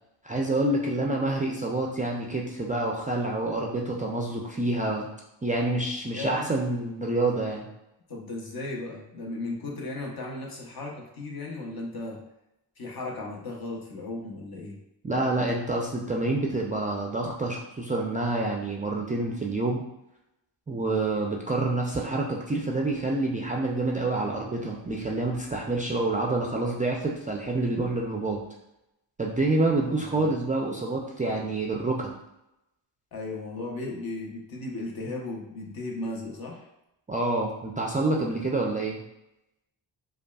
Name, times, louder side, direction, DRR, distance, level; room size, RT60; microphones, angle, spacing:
voice 1, 0.2-5.1 5.4-7.7 15.0-19.8 20.7-28.4 29.2-32.2 37.1-39.0, right 2 dB, 20° right, -2 dB, 0.3 m, -27 dB
voice 2, 6.1-6.5 8.1-12.2 12.8-14.8 29.8-30.3 33.1-36.7, left 2 dB, 50° left, -1 dB, 0.9 m, -36 dB
5.1 x 2.3 x 2.3 m, 0.87 s
cardioid pair, 100°, 46 cm